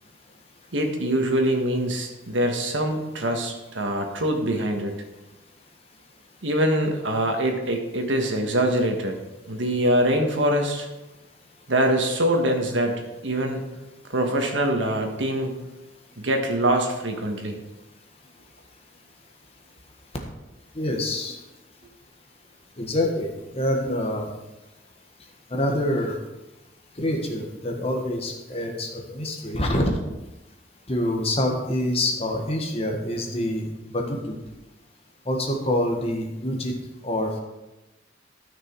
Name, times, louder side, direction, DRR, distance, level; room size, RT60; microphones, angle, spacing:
voice 1, 0.7-4.9 6.4-9.2 9.5-10.9 11.7-13.6 14.1-15.5 16.2-17.6, right 1 dB, 85° right, 3 dB, 1.6 m, -24 dB
voice 2, 20.7-21.4 22.8-24.3 25.5-26.2 27.0-30.0 30.9-34.4 35.3-36.7 37.0-37.4, left 1 dB, 30° left, 2 dB, 1.4 m, -26 dB
13.0 x 6.2 x 4.6 m, 1.0 s
head